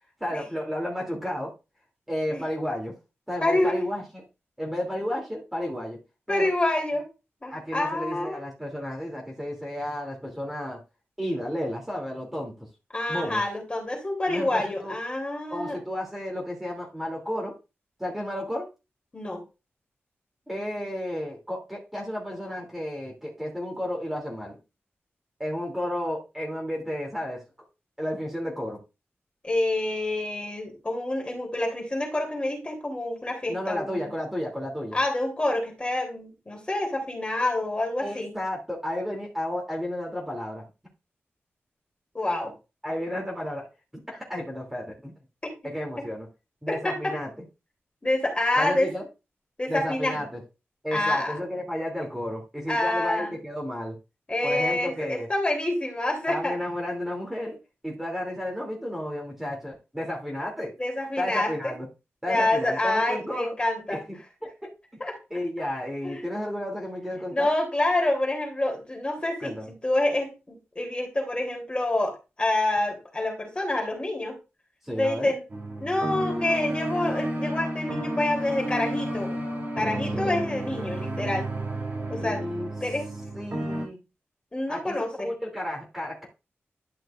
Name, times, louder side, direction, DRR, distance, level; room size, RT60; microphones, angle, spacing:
voice 1, 0.2-1.5 2.1-2.9 3.3-4.3 4.6-6.0 6.3-6.5 7.5-10.8 11.2-12.7 13.1-13.4 14.3-14.9 15.5-17.5 18.0-18.7 20.5-24.6 25.4-27.4 28.0-28.8 33.5-35.0 38.0-40.6 42.8-43.7 43.9-45.1 45.6-46.3 46.6-47.3 48.6-49.0 49.7-50.4 50.8-54.0 54.4-55.3 56.3-57.6 57.8-60.7 61.2-61.9 62.2-63.5 63.9-64.7 65.3-67.5 69.4-69.7 74.8-75.3 80.1-80.3 82.2-82.7 83.3-84.0 84.7-86.3, left 1 dB, 5° right, -1 dB, 2.8 m, -32 dB
voice 2, 3.4-3.8 6.3-7.1 7.4-8.4 12.9-15.8 19.1-19.4 29.4-34.1 34.9-38.3 42.1-42.5 46.7-47.1 48.0-48.9 49.6-50.2 50.9-51.4 52.7-53.3 54.3-56.5 60.8-61.7 62.3-64.0 65.0-65.1 66.0-66.2 67.3-69.6 69.8-74.4 74.9-75.4 75.8-79.4 79.8-81.5 82.1-82.4 82.8-83.1 84.5-85.3, left 2 dB, 25° left, 1 dB, 3.2 m, -27 dB
sound 1, 75.5-83.9, right 1 dB, 50° right, 3.3 m, -31 dB
11.5 x 5.9 x 2.5 m, 0.28 s
wide cardioid pair, 130°, 5 cm